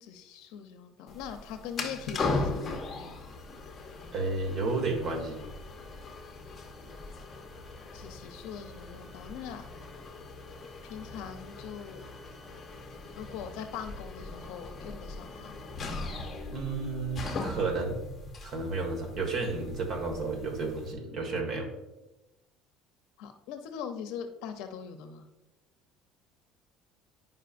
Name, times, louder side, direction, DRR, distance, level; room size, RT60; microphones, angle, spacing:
voice 1, 0.0-3.1 7.9-9.7 10.8-12.0 13.2-15.5 23.2-25.3, left 7 dB, 75° left, 7 dB, 0.6 m, -41 dB
sound 1, 1.1-20.9, left 3 dB, 25° left, 0.8 m, -39 dB
voice 2, 4.1-5.4 16.5-18.0 18.4-21.7, right 3 dB, 50° right, 2 dB, 1.5 m, -32 dB
10.0 x 5.3 x 2.5 m, 1.0 s
cardioid pair, 145°, 0 cm